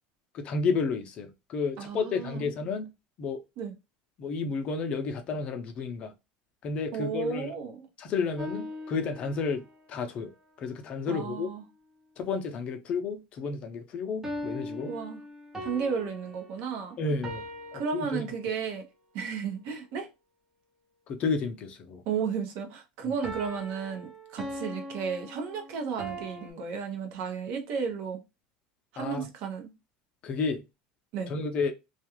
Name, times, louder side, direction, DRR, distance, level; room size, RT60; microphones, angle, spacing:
voice 1, 0.3-2.9 3.2-3.4 4.2-6.1 6.6-7.5 8.0-10.3 10.6-11.5 12.2-14.9 17.0-17.4 17.7-18.2 21.1-22.0 29.0-29.3 30.2-30.6 31.3-31.7, left 4 dB, 35° left, 0.5 m, -31 dB
voice 2, 1.8-2.5 3.6-3.7 6.9-7.9 11.1-11.6 14.9-15.2 15.6-17.0 17.7-18.8 19.1-20.1 22.1-28.2 28.9-29.7 31.1-31.3, right 6 dB, 60° right, 0.8 m, -33 dB
sound 1, 8.4-9.8 14.2-18.8 23.2-26.5, equal, 15° right, 0.6 m, -40 dB
2.4 x 2.2 x 2.9 m
supercardioid pair, 140°, 3 cm